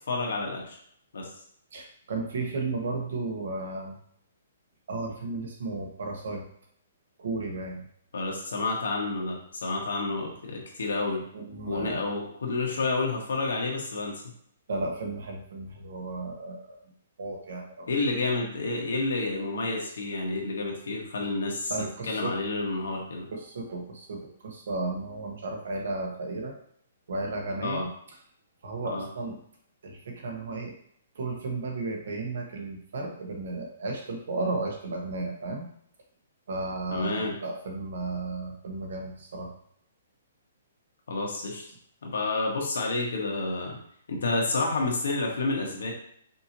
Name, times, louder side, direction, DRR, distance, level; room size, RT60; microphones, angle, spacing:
voice 1, 0.1-0.8 1.1-1.3 8.1-11.2 11.7-14.2 17.9-21.7 22.1-23.3 27.6-27.9 28.8-29.0 36.9-37.3 41.1-41.6 42.0-43.7 44.1-45.9, left 3 dB, 75° left, 0 dB, 1.3 m, -29 dB
voice 2, 1.7-4.0 4.9-6.4 7.2-7.8 11.3-12.0 14.7-16.8 17.2-17.9 21.7-22.3 23.3-26.5 27.1-27.9 28.6-29.4 29.8-30.7 31.1-35.7 36.5-39.5, right 3 dB, 60° right, 1 dB, 1.1 m, -34 dB
5.4 x 2.8 x 2.9 m, 0.66 s
hypercardioid pair, 175°, 0 cm